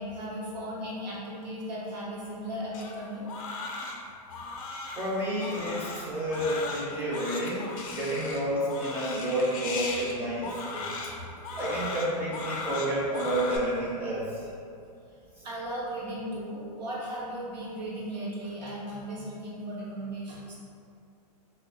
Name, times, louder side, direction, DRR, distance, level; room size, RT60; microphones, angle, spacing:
voice 1, 0.0-3.3 7.9-8.0 11.2-11.3 12.5-12.6 15.4-20.6, equal, 85° right, -6 dB, 0.9 m, -36 dB
Crying sobbing, 2.7-13.6, left 3 dB, 55° left, 0.4 m, -37 dB
voice 2, 5.0-10.9 11.6-14.2, right 1 dB, 10° right, -7 dB, 0.4 m, -30 dB
2.7 x 2.1 x 2.7 m, 2.4 s
hypercardioid pair, 150°, 21 cm